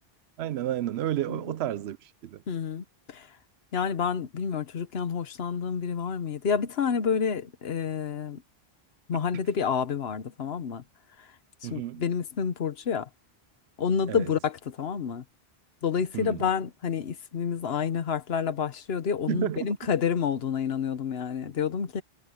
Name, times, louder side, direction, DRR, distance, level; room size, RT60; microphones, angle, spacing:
voice 1, 0.4-2.4 9.1-9.2 11.6-12.0 14.1-14.3 16.1-16.5 19.3-19.7, right 12 dB, 80° right, 0.8 m, -31 dB
voice 2, 2.5-3.3 3.7-8.4 9.1-10.8 11.6-13.1 13.8-15.2 15.8-22.0, left 7 dB, 75° left, 1.2 m, -29 dB
omnidirectional pair, 1.1 m